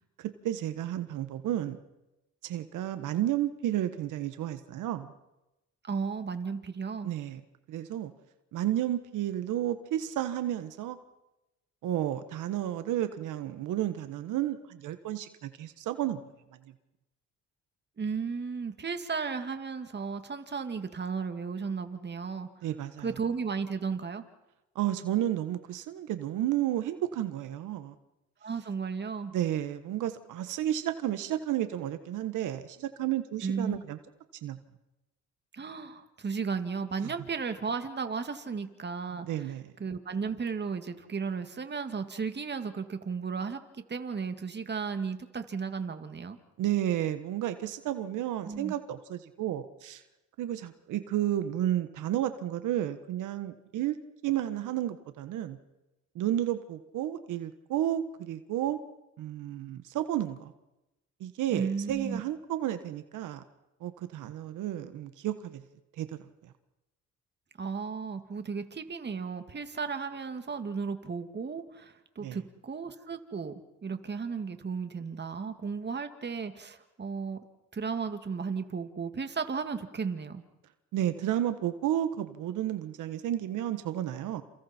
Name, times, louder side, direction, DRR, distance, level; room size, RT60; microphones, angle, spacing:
voice 1, 0.2-1.8 2.4-5.1 7.0-7.4 7.7-8.1 8.5-11.0 11.8-16.2 22.6-23.1 24.7-27.9 29.3-34.0 34.4-34.6 37.0-37.1 39.2-39.7 46.6-50.0 50.4-53.9 54.2-55.6 56.1-58.8 59.2-60.5 61.2-63.4 63.8-65.6 66.0-66.3 72.2-72.4 80.9-84.4, right 12 dB, 85° right, 10 dB, 1.4 m, -32 dB
voice 2, 5.8-7.1 18.0-22.5 23.0-24.2 28.4-29.3 33.4-33.8 35.5-39.5 39.8-43.6 43.9-46.4 48.4-48.7 61.5-62.2 67.6-73.5 73.8-77.4 77.7-80.4, right 5 dB, 35° right, 8 dB, 2.2 m, -34 dB
29.5 x 29.0 x 4.5 m, 0.96 s
cardioid pair, 90°, 30 cm